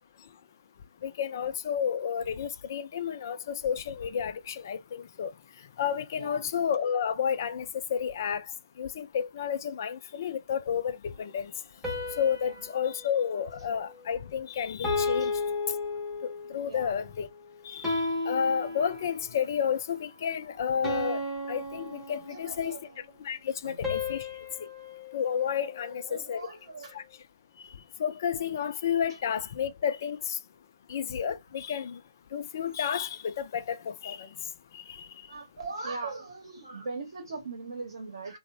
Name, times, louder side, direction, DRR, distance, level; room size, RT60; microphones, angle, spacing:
voice 1, 1.0-5.3 5.8-8.4 8.8-11.5 12.2-15.3 16.2-17.3 17.7-21.2 21.5-22.8 23.2-24.2 25.1-26.4 26.9-27.0 28.0-30.4 30.9-32.0 32.3-34.3 34.7-35.1, left 8 dB, 40° left, 0.4 m, -31 dB
sound 1, 11.8-14.3 14.8-16.6 17.8-19.4 20.8-22.7 23.8-26.2, left 3 dB, 5° right, 0.7 m, -34 dB
voice 2, 16.7-17.0 22.3-23.0 23.6-23.8 24.1-24.2 25.8-27.0 29.1-29.2 35.3-38.4, right 3 dB, 60° right, 0.8 m, -40 dB
2.9 x 2.1 x 2.6 m
hypercardioid pair, 160°, 3 cm